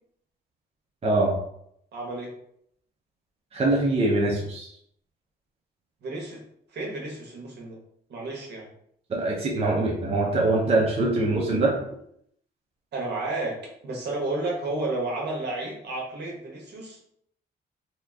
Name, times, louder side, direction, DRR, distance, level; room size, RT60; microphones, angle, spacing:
voice 1, 1.0-1.4 3.5-4.7 9.1-11.8, right 2 dB, 35° right, -2 dB, 0.7 m, -23 dB
voice 2, 1.9-2.3 6.0-6.4 6.7-7.8 8.1-8.7 12.9-17.0, right 2 dB, 70° right, -2 dB, 1.1 m, -32 dB
2.8 x 2.4 x 3.5 m, 0.70 s
cardioid pair, 120°, 18 cm